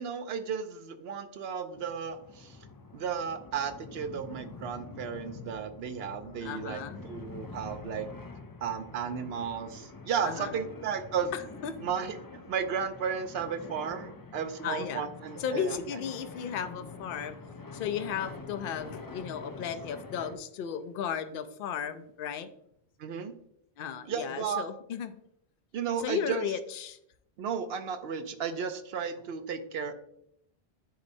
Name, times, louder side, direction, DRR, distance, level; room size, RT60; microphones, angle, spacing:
voice 1, 0.0-2.6 2.9-8.1 8.6-11.3 11.8-15.8 23.0-23.3 24.1-24.7 25.7-26.4 27.4-29.9, right 7 dB, 75° right, 9 dB, 0.9 m, -34 dB
sound 1, 1.7-20.4, left 3 dB, 35° left, 0.3 m, -46 dB
voice 2, 6.4-7.0 10.2-10.5 11.3-11.8 14.6-15.1 15.4-17.4 17.7-22.5 23.8-25.2 26.0-27.0, left 7 dB, 65° left, 10 dB, 0.7 m, -35 dB
10.0 x 4.2 x 2.6 m, 0.74 s
omnidirectional pair, 1.1 m